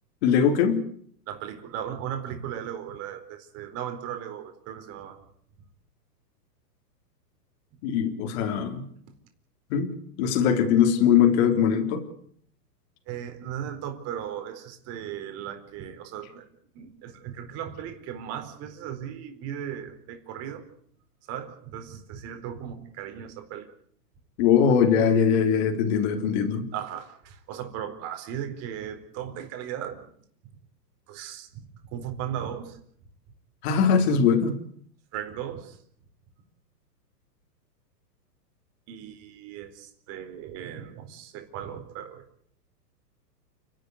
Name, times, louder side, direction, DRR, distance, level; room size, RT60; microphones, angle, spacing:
voice 1, 0.2-0.8 7.8-8.8 9.7-12.0 24.4-26.7 33.6-34.5, left 7 dB, 40° left, 3.7 m, -21 dB
voice 2, 1.3-5.2 13.1-16.5 16.7-20.7 21.3-23.7 26.7-30.0 31.1-32.8 35.1-35.8 38.9-42.2, right 9 dB, 30° right, 4.3 m, -37 dB
29.5 x 12.0 x 9.7 m
hypercardioid pair, 150°, 49 cm